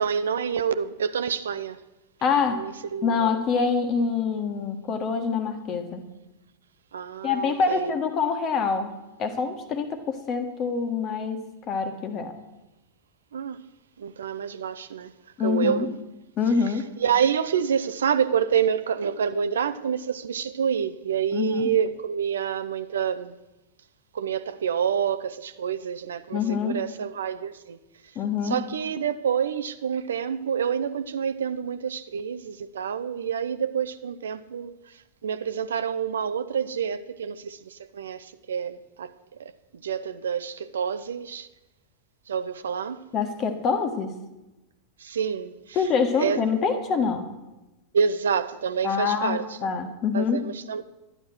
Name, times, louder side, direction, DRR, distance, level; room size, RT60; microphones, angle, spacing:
voice 1, 0.0-1.8 2.5-3.3 6.9-8.0 13.3-13.7 14.0-15.1 15.4-15.9 17.0-23.3 24.1-27.8 28.4-39.5 39.8-41.5 42.3-43.1 45.0-45.8 46.2-46.4 47.9-49.5 50.1-50.8, right 7 dB, 65° right, 0.6 m, -28 dB
voice 2, 2.2-2.7 3.0-6.0 7.2-8.9 9.2-11.4 11.7-12.3 15.4-15.9 16.4-16.9 21.3-21.7 26.3-26.8 28.1-28.6 43.1-44.1 45.7-47.3 48.8-50.4, left 5 dB, 35° left, 1.5 m, -25 dB
12.5 x 10.0 x 6.0 m
figure-of-eight pair, 90°, 0 cm